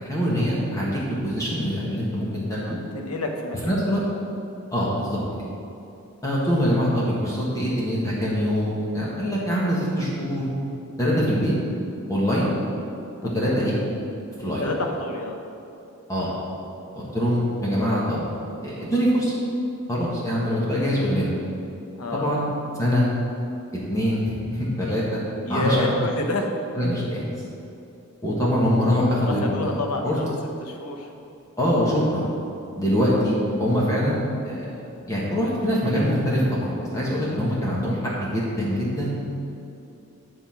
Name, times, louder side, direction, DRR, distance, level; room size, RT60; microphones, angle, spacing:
voice 1, 0.0-2.8 3.6-4.0 4.7-5.2 6.2-10.5 11.0-11.5 12.1-12.5 13.2-13.7 14.4-14.7 16.1-16.3 16.9-18.2 18.6-19.3 19.9-21.3 22.1-22.5 22.8-23.1 23.9-25.2 25.5-26.0 26.7-27.2 28.2-29.7 30.0-30.2 31.6-32.3 32.8-34.8 35.1-39.1, equal, 15° left, -6 dB, 1.6 m, -23 dB
voice 2, 2.6-4.0 13.2-13.8 14.6-15.4 22.0-22.4 25.5-26.5 29.1-30.3 30.6-31.1, left 2 dB, 85° left, 2 dB, 1.2 m, -29 dB
11.5 x 4.0 x 7.4 m, 2.8 s
head